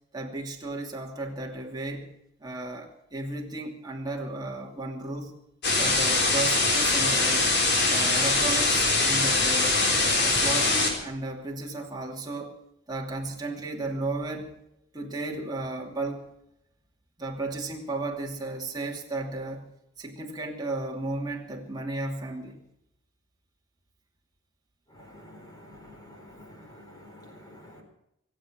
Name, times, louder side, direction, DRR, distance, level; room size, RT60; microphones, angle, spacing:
voice 1, 0.1-2.1 2.4-5.4 5.8-7.5 7.9-9.8 10.2-12.6 12.9-14.5 14.9-16.2 17.2-19.7 20.0-22.6, right 2 dB, 20° right, 0 dB, 2.6 m, -34 dB
sound 1, 5.6-10.9, left 3 dB, 55° left, 3.8 m, -23 dB
voice 2, 25.0-27.8, left 1 dB, 20° left, 2 dB, 4.2 m, -49 dB
25.0 x 8.4 x 6.2 m, 0.81 s
head